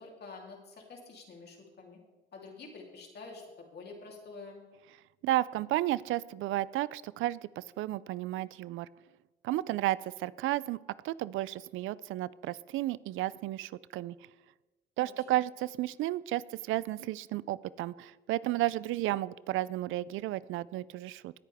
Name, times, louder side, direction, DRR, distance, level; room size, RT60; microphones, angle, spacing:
voice 1, 0.0-2.0 2.3-4.6 15.0-15.4, left 3 dB, 55° left, 0 dB, 3.3 m, -48 dB
voice 2, 5.2-8.9 9.4-10.8 11.0-14.1 15.0-21.3, right 15 dB, 85° right, 20 dB, 0.4 m, -33 dB
18.5 x 9.0 x 3.5 m, 1.2 s
cardioid pair, 90°, 20 cm